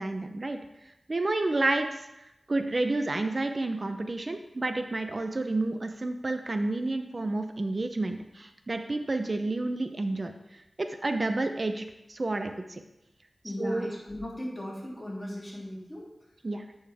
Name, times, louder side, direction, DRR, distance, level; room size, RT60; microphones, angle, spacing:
voice 1, 0.0-12.8 13.6-13.9 16.4-16.6, right 2 dB, 45° right, 6 dB, 0.6 m, -30 dB
voice 2, 13.4-16.0, left 1 dB, 15° left, -6 dB, 2.9 m, -37 dB
8.4 x 5.4 x 3.5 m, 0.89 s
wide cardioid pair, 70°, 0 cm